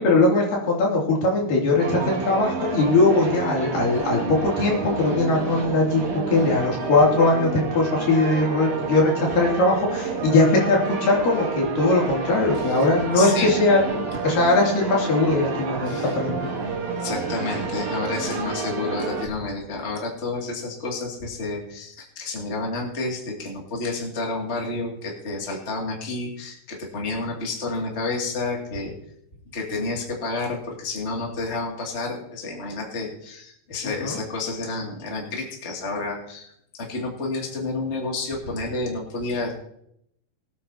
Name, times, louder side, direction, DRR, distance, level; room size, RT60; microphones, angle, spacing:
voice 1, 0.0-16.5 33.8-34.2, left 2 dB, 70° left, -2 dB, 4.5 m, -20 dB
sound 1, 1.8-19.3, right 4 dB, 45° right, 2.4 m, -29 dB
voice 2, 12.5-12.9 13.1-13.5 15.8-16.2 17.0-28.9 29.5-39.5, left 3 dB, 20° left, -1 dB, 2.2 m, -30 dB
22.5 x 9.1 x 2.8 m, 0.73 s
omnidirectional pair, 4.1 m